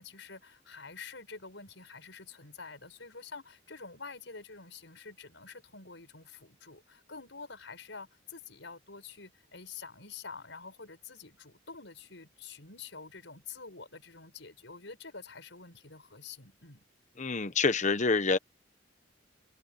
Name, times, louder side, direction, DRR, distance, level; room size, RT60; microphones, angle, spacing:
voice 1, 0.0-16.8, left 4 dB, 70° left, 7.3 m, -47 dB
voice 2, 17.2-18.4, left 4 dB, 40° left, 1.0 m, -27 dB
head